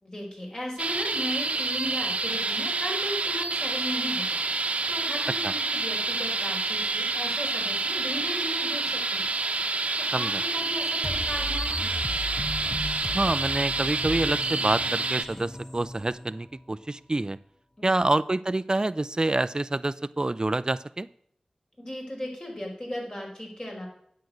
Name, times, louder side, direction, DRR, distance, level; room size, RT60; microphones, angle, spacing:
voice 1, 0.0-9.2 10.0-12.0 17.8-18.1 21.8-23.9, left 1 dB, 35° left, -1 dB, 4.9 m, -37 dB
sound 1, 0.8-15.2, right 3 dB, 70° right, 1.0 m, -28 dB
sound 2, 11.0-16.7, left 1 dB, 15° left, 0.7 m, -36 dB
voice 2, 13.1-17.4 17.8-21.1, right 2 dB, 35° right, 15 dB, 0.5 m, -27 dB
9.3 x 7.8 x 6.4 m, 0.67 s
cardioid pair, 40°, 2 cm